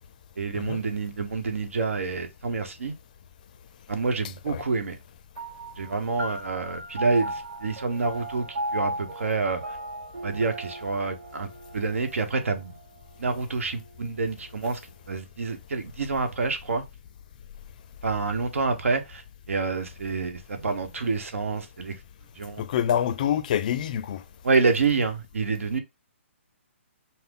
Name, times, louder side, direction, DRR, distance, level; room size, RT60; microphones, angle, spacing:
voice 1, 0.4-2.9 3.9-5.0 5.8-9.6 10.2-11.5 11.7-12.8 13.2-14.8 15.1-16.8 18.0-19.2 19.5-21.9 22.4-22.6 24.4-25.8, right 4 dB, 85° right, 1.1 m, -27 dB
sound 1, 5.4-14.2, right 1 dB, 50° right, 1.9 m, -37 dB
voice 2, 22.6-24.2, left 9 dB, 35° left, 0.4 m, -26 dB
5.7 x 2.1 x 3.8 m
hypercardioid pair, 165°, 7 cm